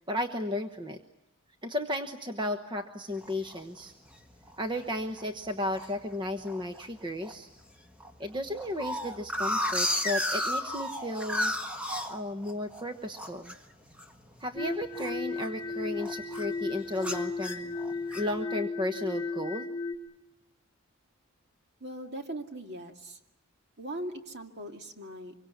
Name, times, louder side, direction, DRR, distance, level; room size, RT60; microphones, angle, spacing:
voice 1, 0.1-1.0 1.6-3.9 4.6-7.5 8.2-11.5 12.1-13.5 14.4-17.8 18.1-19.7, left 1 dB, 20° right, 6 dB, 1.1 m, -34 dB
sound 1, 3.2-3.6 4.1-4.2 4.5-4.8 5.2-5.9 6.4-6.9 7.2-7.3 7.6-7.7 8.0-12.8 13.1-15.7 16.0-16.5 17.0-18.4, left 1 dB, 5° right, 1.6 m, -33 dB
sound 2, 14.6-20.0, left 3 dB, 15° left, 3.6 m, -35 dB
voice 2, 21.8-23.2 23.8-25.3, right 1 dB, 50° right, 4 dB, 2.3 m, -40 dB
25.0 x 23.5 x 8.5 m, 0.90 s
head